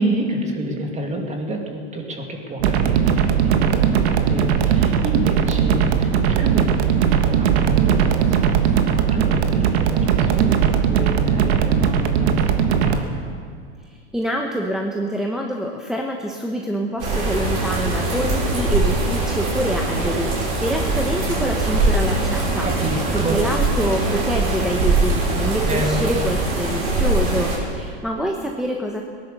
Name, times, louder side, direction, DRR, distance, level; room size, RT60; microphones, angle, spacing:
voice 1, 0.0-13.1 22.6-23.4 25.6-26.0, right 1 dB, 20° right, 2 dB, 2.5 m, -28 dB
sound 1, 2.6-13.0, right 8 dB, 70° right, 1.5 m, -18 dB
voice 2, 13.9-22.7 23.1-29.0, equal, ahead, 0 dB, 1.0 m, -26 dB
sound 2, 17.0-27.6, right 2 dB, 50° right, 5.4 m, -22 dB
18.5 x 11.0 x 6.8 m, 2.2 s
supercardioid pair, 120°, 34 cm